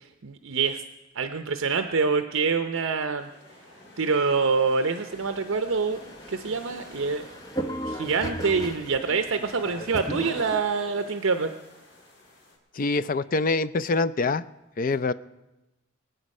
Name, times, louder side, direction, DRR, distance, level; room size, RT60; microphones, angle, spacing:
voice 1, 0.2-0.8 1.2-3.3 4.0-6.0 6.3-7.2 7.8-11.5, right 4 dB, 75° right, 8 dB, 0.7 m, -25 dB
sound 1, 3.2-12.6, left 2 dB, 60° left, 5.7 m, -49 dB
sound 2, 5.1-10.6, right 1 dB, 20° left, 0.9 m, -36 dB
voice 2, 12.8-14.4 14.8-15.1, left 3 dB, 40° left, 14 dB, 0.4 m, -25 dB
25.0 x 9.0 x 5.4 m, 0.99 s
head